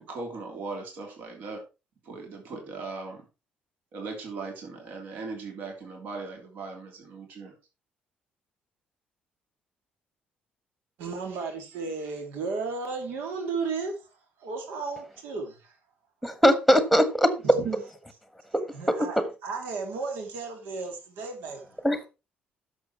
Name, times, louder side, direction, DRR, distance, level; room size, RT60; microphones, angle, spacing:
voice 1, 0.0-1.6 2.1-3.2 3.9-7.5, right 3 dB, 60° right, 3.4 m, -38 dB
voice 2, 11.0-14.1 14.4-15.8 17.4-17.8 18.7-21.7, right 4 dB, 85° right, 2.6 m, -34 dB
voice 3, 16.2-17.3 19.0-19.1 21.8-22.1, equal, ahead, 1.5 m, -20 dB
11.0 x 7.1 x 4.4 m
cardioid pair, 160°, 3 cm